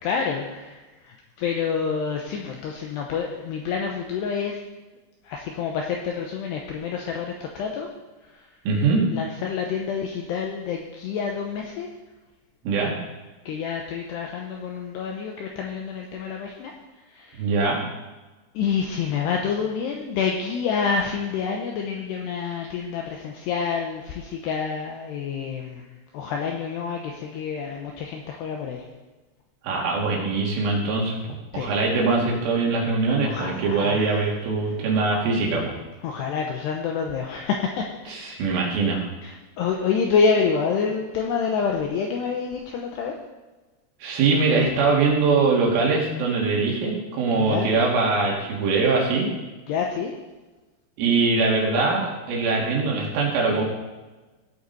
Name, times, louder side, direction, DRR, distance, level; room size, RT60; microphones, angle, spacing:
voice 1, 0.0-4.6 5.2-7.9 8.3-8.5 9.1-11.9 13.5-16.7 17.1-17.5 18.5-25.8 26.1-28.9 31.5-31.7 33.2-34.3 36.0-38.6 39.2-43.2 47.4-47.7 49.7-50.1, left 6 dB, 80° left, 1 dB, 2.4 m, -28 dB
voice 2, 8.7-9.0 12.6-13.0 17.4-17.8 29.6-31.2 31.5-35.7 38.1-39.0 44.0-49.3 51.0-53.7, right 4 dB, 75° right, -2 dB, 4.6 m, -22 dB
17.0 x 8.2 x 4.1 m, 1.2 s
omnidirectional pair, 5.9 m